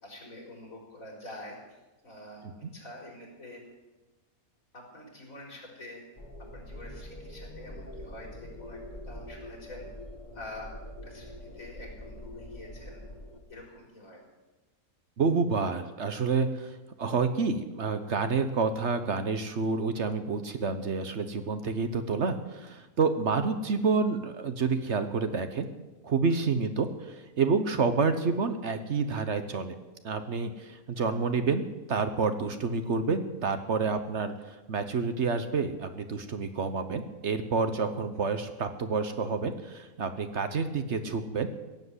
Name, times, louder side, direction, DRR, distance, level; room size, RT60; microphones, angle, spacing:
voice 1, 0.0-2.5 2.7-3.6 4.7-6.0 6.5-9.9 10.3-10.7 11.0-13.0 13.5-14.2, left 1 dB, 65° left, -1 dB, 4.8 m, -46 dB
sound 1, 6.2-13.4, left 1 dB, 30° left, 1.9 m, -44 dB
voice 2, 15.2-25.7 26.0-29.7 30.0-41.5, right 4 dB, 55° right, 9 dB, 1.2 m, -29 dB
16.0 x 7.8 x 9.7 m, 1.1 s
omnidirectional pair, 1.5 m